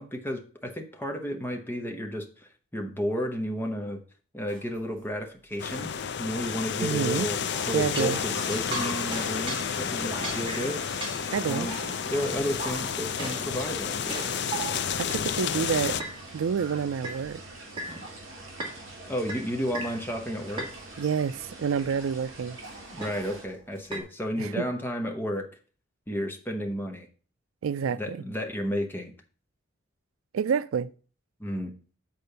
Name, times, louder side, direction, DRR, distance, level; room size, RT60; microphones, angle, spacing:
voice 1, 0.0-4.0 4.3-7.4 7.7-10.8 11.5-11.7 12.1-14.4 19.1-20.7 22.9-25.5 26.1-27.1 27.9-29.1 31.4-31.7, equal, 10° left, 1.0 m, -32 dB
sound 1, 4.5-4.8 5.6-15.2 15.7-17.2 17.7-18.3 18.6-19.0 19.3-20.0 20.5-21.2 21.9-22.2 22.7-24.0, right 2 dB, 25° right, 2.2 m, -40 dB
sound 2, 5.6-16.0, left 7 dB, 55° left, 0.4 m, -31 dB
voice 2, 6.8-7.3 7.7-8.2 11.3-11.7 15.0-16.0 16.3-17.4 21.0-22.6 24.4-24.6 27.6-28.2 30.3-30.9, right 6 dB, 85° right, 0.4 m, -28 dB
sound 3, 7.5-23.4, right 2 dB, 65° right, 4.6 m, -45 dB
8.4 x 4.3 x 6.7 m
head